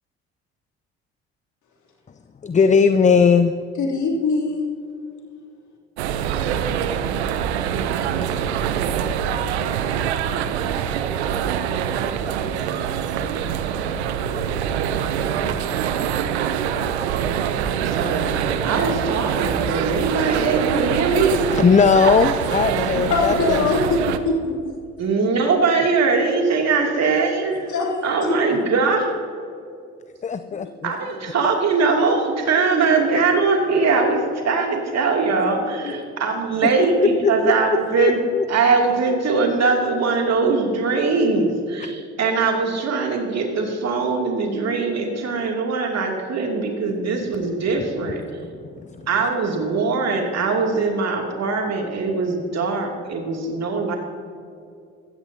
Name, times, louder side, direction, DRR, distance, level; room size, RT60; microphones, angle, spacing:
voice 1, 2.4-3.5 21.5-23.6 30.2-30.9 37.0-37.3 38.0-38.4 49.0-49.1, left 5 dB, 25° left, 11 dB, 0.6 m, -18 dB
voice 2, 3.8-4.7 23.1-24.5 27.7-27.9 28.2-28.6 30.5-30.6 35.5-35.6 35.8-35.9, left 3 dB, 65° left, -1 dB, 3.1 m, -22 dB
sound 1, 6.0-24.2, right 8 dB, 90° right, 0.7 m, -24 dB
voice 3, 17.8-21.4 25.0-27.7 28.0-29.1 30.8-38.2 38.5-48.2 49.1-53.9, right 4 dB, 55° right, 1 dB, 2.8 m, -21 dB
15.5 x 15.0 x 2.8 m, 2.4 s
hypercardioid pair, 55°, 32 cm